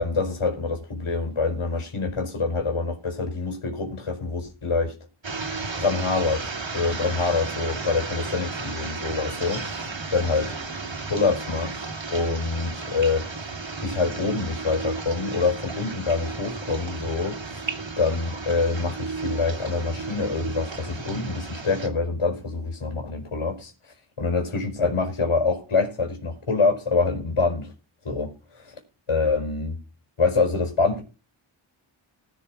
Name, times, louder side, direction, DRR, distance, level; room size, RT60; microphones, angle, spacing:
voice 1, 0.0-4.9 5.7-10.5 11.1-13.5 13.8-23.7 24.2-27.7 28.0-28.7 29.1-29.7 30.2-31.0, left 4 dB, 75° left, 4.9 m, -26 dB
sound 1, 5.2-21.9, right 4 dB, 65° right, 2.9 m, -34 dB
20.0 x 6.9 x 4.3 m
wide cardioid pair, 50°, 49 cm